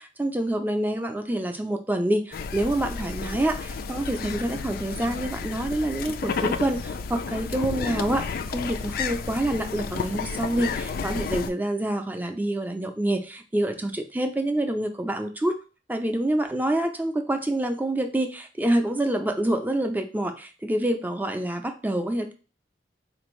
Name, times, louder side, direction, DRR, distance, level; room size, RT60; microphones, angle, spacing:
voice 1, 0.0-15.5 15.9-22.3, right 1 dB, 10° right, 5 dB, 0.4 m, -27 dB
sound 1, 2.3-11.5, left 5 dB, 55° left, 0.3 m, -32 dB
4.2 x 2.6 x 3.1 m, 0.34 s
head